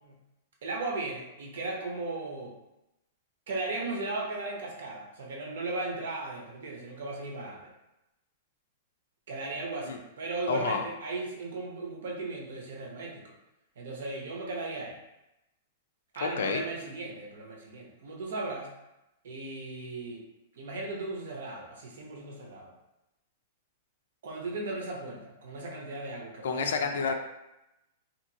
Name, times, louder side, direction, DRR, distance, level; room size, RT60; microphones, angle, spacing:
voice 1, 0.6-2.6 3.5-7.7 9.3-13.3 13.8-14.9 16.1-18.7 19.2-20.2 20.6-22.7 24.2-27.0, right 2 dB, 70° right, -1 dB, 0.8 m, -36 dB
voice 2, 10.5-10.9 16.2-16.6 26.4-27.1, left 5 dB, 85° left, 5 dB, 0.4 m, -29 dB
2.8 x 2.5 x 2.7 m, 0.93 s
supercardioid pair, 170°, 0 cm